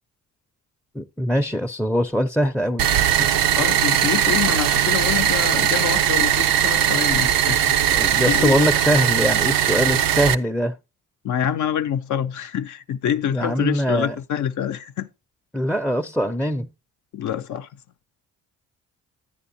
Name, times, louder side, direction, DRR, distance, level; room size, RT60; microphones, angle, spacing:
voice 1, 0.9-2.9 3.2-3.3 7.9-10.7 13.3-14.2 15.5-16.7, equal, 5° left, 0.5 m, -22 dB
sound 1, 2.8-10.3, right 10 dB, 70° right, 0.6 m, -19 dB
voice 2, 3.6-8.6 11.2-15.1 17.1-17.7, left 9 dB, 55° left, 0.5 m, -26 dB
10.0 x 9.4 x 2.7 m
supercardioid pair, 60°, 35 cm